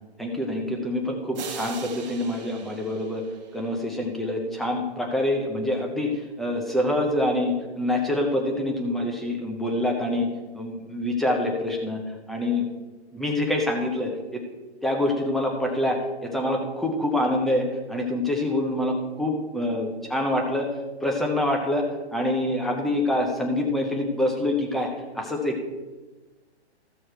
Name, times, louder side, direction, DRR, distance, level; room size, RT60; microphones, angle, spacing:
voice 1, 0.2-3.2 3.5-10.3 10.5-12.0 12.3-12.7 13.1-14.4 14.8-20.7 21.0-24.9 25.1-25.6, left 1 dB, ahead, 1 dB, 0.5 m, -26 dB
sound 1, 1.3-4.0, right 6 dB, 40° right, 1.2 m, -41 dB
14.0 x 6.4 x 4.4 m, 1.2 s
hypercardioid pair, 140°, 34 cm